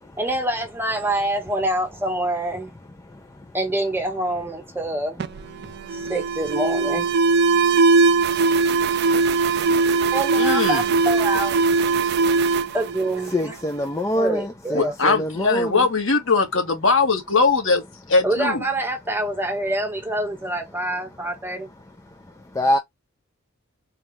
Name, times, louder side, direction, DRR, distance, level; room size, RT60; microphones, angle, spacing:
voice 1, 0.2-2.8 3.5-5.2 5.9-7.1 10.1-11.6 12.7-13.6 14.1-14.9 18.2-21.7, right 1 dB, 10° right, 1.2 m, -26 dB
Alarm, 5.2-13.8, right 4 dB, 55° right, 0.4 m, -20 dB
voice 2, 10.4-10.8 14.7-17.8 18.1-18.6, left 4 dB, 75° left, 1.4 m, -20 dB
voice 3, 13.3-15.9 22.5-22.8, equal, 15° left, 0.4 m, -24 dB
4.0 x 2.3 x 3.2 m
head